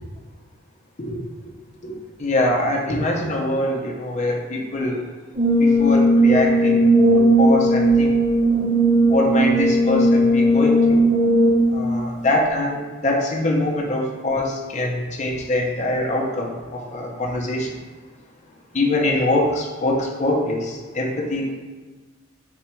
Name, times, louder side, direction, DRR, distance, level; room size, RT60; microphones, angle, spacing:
voice 1, 2.2-5.0 5.6-6.8 7.1-8.1 9.1-11.0 11.7-17.7 18.7-21.5, left 1 dB, 35° left, -1 dB, 0.7 m, -23 dB
Brass instrument, 5.4-11.8, right 1 dB, 45° right, 0.9 m, -16 dB
4.2 x 2.4 x 4.4 m, 1.3 s
head